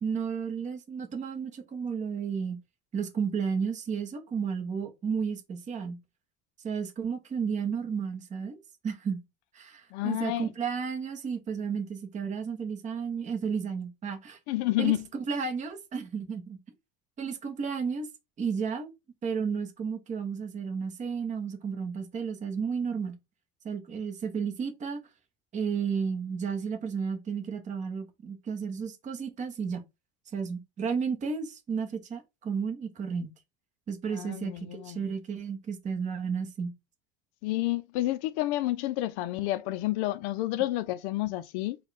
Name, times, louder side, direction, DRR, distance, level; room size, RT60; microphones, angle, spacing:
voice 1, 0.0-2.6 2.9-6.0 6.6-8.6 8.8-9.2 9.5-14.4 14.8-16.6 17.2-18.1 18.4-18.9 19.2-23.1 23.6-25.0 25.5-29.8 30.3-33.3 33.9-36.7, right 6 dB, 20° right, 0.8 m, -32 dB
voice 2, 9.9-10.5 14.5-15.0 34.1-35.1 37.4-41.8, left 16 dB, 65° left, 0.5 m, -30 dB
4.3 x 2.3 x 4.7 m
cardioid pair, 150°, 36 cm